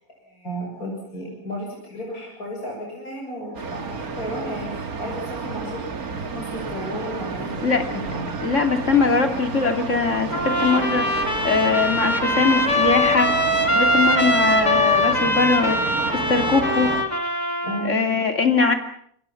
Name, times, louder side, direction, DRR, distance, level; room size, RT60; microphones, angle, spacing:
voice 1, 0.3-7.6 7.9-8.3 17.6-18.0, equal, 85° left, -1 dB, 7.6 m, -33 dB
sound 1, 3.5-17.0, right 4 dB, 80° right, 2.3 m, -31 dB
voice 2, 8.4-13.3 13.7-15.9 16.3-16.9 17.8-18.7, left 4 dB, 55° left, 6 dB, 2.9 m, -21 dB
Trumpet, 10.3-17.9, left 1 dB, 30° left, 2.7 m, -22 dB
28.0 x 23.5 x 5.9 m, 0.65 s
omnidirectional pair, 1.5 m